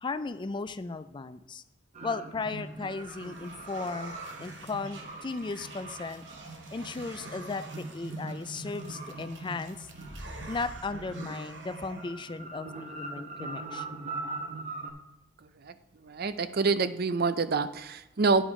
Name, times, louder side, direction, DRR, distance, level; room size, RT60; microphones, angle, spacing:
voice 1, 0.0-1.6 2.0-6.2 6.7-9.9 10.5-14.0, left 3 dB, 25° left, 13 dB, 0.4 m, -36 dB
sound 1, 1.9-14.9, right 2 dB, 35° right, 1.1 m, -42 dB
sound 2, 2.4-12.4, right 2 dB, 70° right, 1.2 m, -48 dB
voice 2, 16.0-18.4, right 4 dB, 55° right, 13 dB, 0.5 m, -27 dB
10.0 x 5.2 x 4.9 m, 1.0 s
head